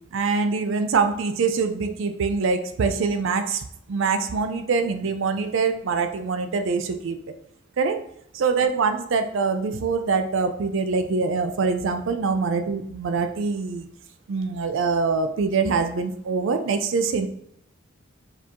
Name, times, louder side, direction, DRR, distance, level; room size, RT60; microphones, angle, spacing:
voice 1, 0.1-7.2 7.8-8.0 8.3-13.9 14.3-17.3, right 4 dB, 65° right, 8 dB, 0.4 m, -24 dB
4.8 x 2.9 x 3.6 m, 0.74 s
head